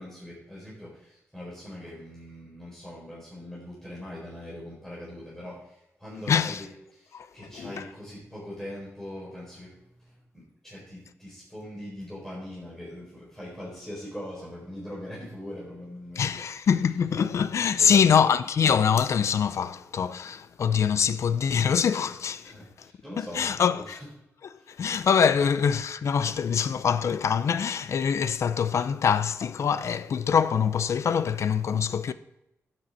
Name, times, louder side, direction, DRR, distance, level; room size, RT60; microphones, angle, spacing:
voice 1, 0.0-16.5 17.7-18.3 22.4-24.1 24.6-24.7 25.4-25.5, left 1 dB, 5° left, 4.2 m, -42 dB
voice 2, 6.3-6.6 7.1-7.3 7.5-7.9 16.2-22.9 23.2-24.0 24.5-32.1, left 7 dB, 70° left, 0.5 m, -24 dB
12.5 x 7.9 x 4.3 m
wide cardioid pair, 110°, 5 cm